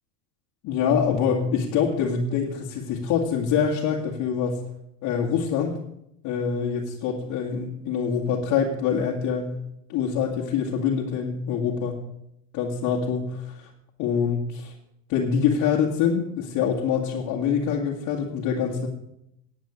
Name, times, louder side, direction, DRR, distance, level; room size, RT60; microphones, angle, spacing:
voice 1, 0.6-4.6 5.0-5.8 6.2-9.6 9.9-12.0 12.5-13.7 14.0-14.7 15.1-18.9, left 7 dB, 55° left, -3 dB, 2.1 m, -25 dB
9.5 x 9.0 x 7.3 m, 0.77 s
supercardioid pair, 130°, 38 cm